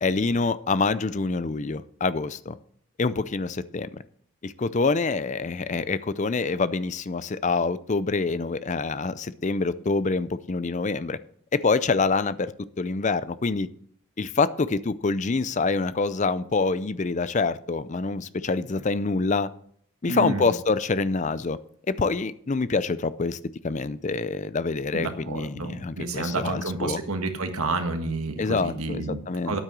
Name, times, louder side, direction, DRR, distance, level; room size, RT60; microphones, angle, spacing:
voice 1, 0.0-2.5 3.0-4.0 4.4-11.2 11.5-12.5 12.8-13.7 14.2-19.5 20.0-21.6 22.0-23.4 23.6-27.0 28.4-29.6, left 4 dB, 35° left, 15 dB, 0.5 m, -26 dB
voice 2, 20.1-20.5 24.9-29.6, right 3 dB, 85° right, 6 dB, 1.6 m, -30 dB
9.7 x 8.7 x 6.1 m, 0.63 s
head